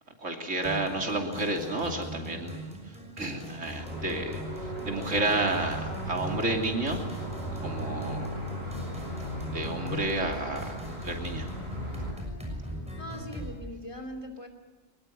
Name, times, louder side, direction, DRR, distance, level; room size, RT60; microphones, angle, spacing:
voice 1, 0.2-2.7 3.2-4.4 4.8-7.2 7.5-8.3 9.1-11.5, right 2 dB, 75° right, 2 dB, 3.3 m, -31 dB
sound 1, 0.6-13.6, equal, 5° right, 6.4 m, -40 dB
sound 2, 3.8-12.1, equal, 55° right, 6.3 m, -37 dB
voice 2, 13.0-14.5, equal, 25° left, 5 dB, 3.1 m, -40 dB
23.0 x 21.5 x 9.2 m, 1.2 s
omnidirectional pair, 1.3 m